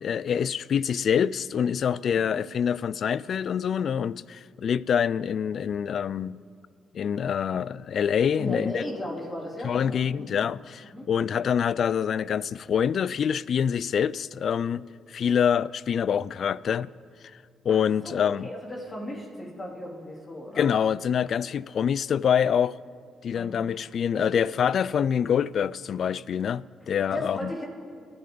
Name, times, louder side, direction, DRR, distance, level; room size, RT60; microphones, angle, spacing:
voice 1, 0.0-6.4 6.9-8.8 9.6-14.8 15.1-16.9 17.7-18.5 20.6-22.7 23.2-27.5, left 8 dB, 55° left, 0.3 m, -26 dB
voice 2, 8.4-10.4 10.9-11.1 17.7-20.7 23.3-24.3 24.6-24.7 27.1-27.7, left 1 dB, 30° left, 3.3 m, -37 dB
24.0 x 10.5 x 3.9 m
cardioid pair, 90°, 0 cm